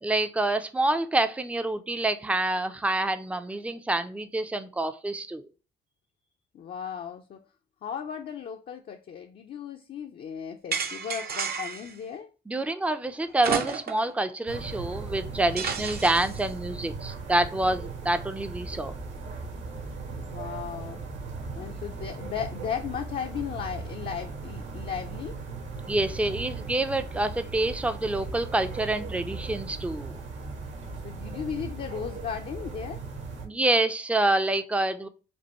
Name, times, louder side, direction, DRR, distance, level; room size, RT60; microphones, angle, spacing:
voice 1, 0.0-5.4 12.5-18.9 25.9-30.2 33.4-35.1, right 2 dB, 5° right, 0.5 m, -27 dB
voice 2, 6.5-7.4 7.8-12.3 20.1-21.0 21.5-25.4 31.0-33.0, left 8 dB, 50° left, 0.6 m, -36 dB
sound 1, 10.7-11.9 13.4-14.1 14.5-14.6 15.6-16.4, right 6 dB, 50° right, 0.7 m, -31 dB
sound 2, 14.5-33.5, right 4 dB, 70° right, 1.6 m, -38 dB
5.3 x 2.5 x 2.9 m
cardioid pair, 90°, 20 cm